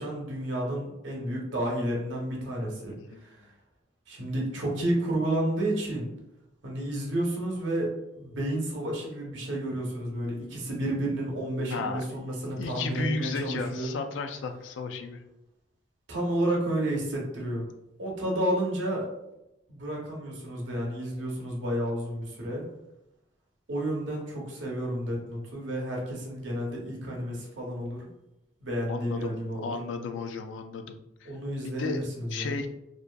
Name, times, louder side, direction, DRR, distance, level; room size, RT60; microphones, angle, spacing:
voice 1, 0.0-3.0 3.2-3.5 4.1-6.1 6.6-13.9 16.1-17.6 18.0-19.1 19.7-22.6 23.7-28.1 28.6-29.7 31.2-32.6, right 1 dB, 90° right, -1 dB, 0.8 m, -31 dB
voice 2, 2.9-3.2 11.7-15.2 28.9-31.3 31.6-32.0 32.3-32.7, left 4 dB, 85° left, 7 dB, 0.3 m, -34 dB
2.6 x 2.5 x 2.2 m, 0.88 s
head